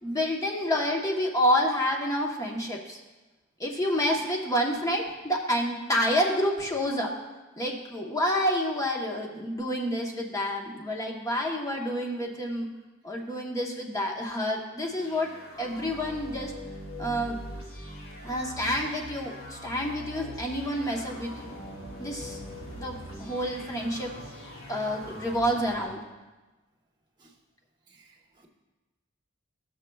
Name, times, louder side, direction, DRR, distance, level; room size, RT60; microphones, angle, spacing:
voice 1, 0.0-3.0 3.6-7.1 7.6-12.7 13.0-15.3 15.6-16.5 17.0-17.4 18.2-21.6 22.0-22.4 22.7-24.1 24.7-26.0, equal, 15° left, 0 dB, 0.9 m, -28 dB
sound 1, 14.8-25.8, equal, 85° left, 2.8 m, -42 dB
voice 2, 27.9-28.5, right 3 dB, 20° right, -1 dB, 1.1 m, -60 dB
15.5 x 6.3 x 2.3 m, 1.2 s
head